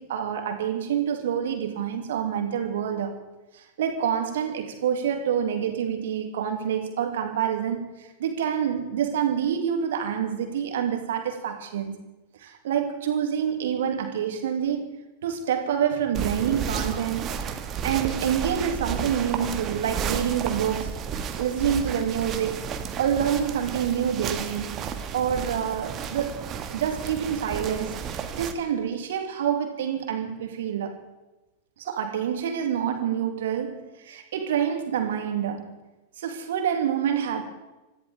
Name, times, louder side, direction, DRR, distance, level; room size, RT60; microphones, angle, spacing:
voice 1, 0.0-3.2 3.5-12.0 12.4-14.9 15.2-17.4 17.8-21.0 21.4-22.6 23.0-24.9 25.1-31.0 31.8-35.8 36.2-37.4, right 8 dB, 60° right, 2.6 m, -27 dB
sound 1, 16.1-28.5, right 7 dB, 30° right, 1.6 m, -32 dB
27.0 x 14.0 x 3.6 m
figure-of-eight pair, 90°, 0 cm